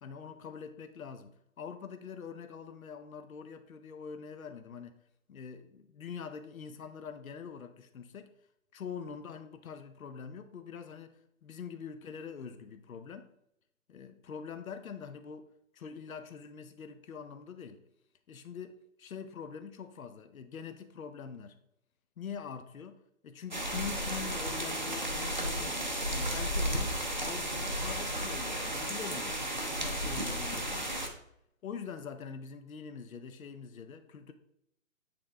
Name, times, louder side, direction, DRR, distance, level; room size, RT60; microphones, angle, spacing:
voice 1, 0.0-5.0 5.3-8.3 8.7-13.3 13.9-15.5 15.7-17.8 18.3-21.6 22.2-25.8 26.1-26.9 27.2-29.4 29.7-30.9 31.6-34.3, left 6 dB, 75° left, 0.8 m, -44 dB
sound 1, 23.5-31.1, equal, 35° right, 0.5 m, -33 dB
8.5 x 3.7 x 3.4 m
hypercardioid pair, 180°, 42 cm